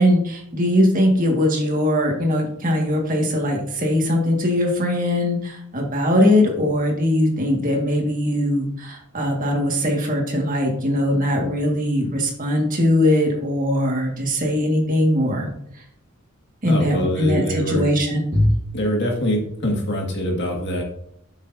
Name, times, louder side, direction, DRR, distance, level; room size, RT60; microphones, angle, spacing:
voice 1, 0.0-15.5 16.6-18.6, left 1 dB, 40° right, 1 dB, 1.8 m, -20 dB
voice 2, 16.7-17.9 18.7-20.8, equal, 55° left, 0 dB, 1.9 m, -24 dB
11.5 x 6.5 x 2.7 m, 0.71 s
head